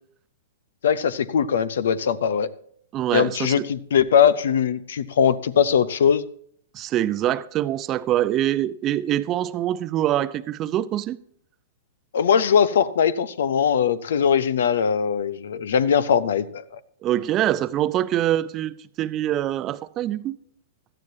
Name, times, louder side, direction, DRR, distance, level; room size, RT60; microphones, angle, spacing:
voice 1, 0.8-2.5 3.1-6.2 12.1-16.8, left 7 dB, 65° left, 0.8 m, -20 dB
voice 2, 2.9-3.7 6.7-11.2 17.0-20.4, right 12 dB, 30° right, 0.6 m, -24 dB
17.0 x 13.0 x 2.8 m
figure-of-eight pair, 110°, 0 cm